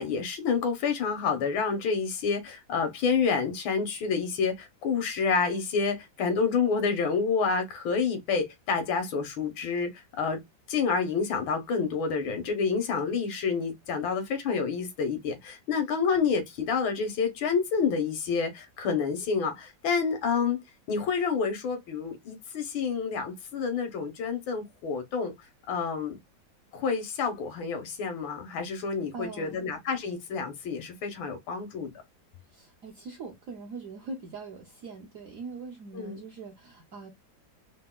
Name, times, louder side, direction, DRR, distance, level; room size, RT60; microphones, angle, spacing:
voice 1, 0.0-9.9 10.2-10.4 10.7-20.6 20.9-25.3 25.7-26.2 26.7-31.9 35.9-36.2, left 5 dB, 85° left, 1.7 m, -28 dB
voice 2, 29.1-29.7 32.5-37.1, right 4 dB, 65° right, 0.8 m, -42 dB
4.0 x 2.1 x 2.2 m
omnidirectional pair, 2.1 m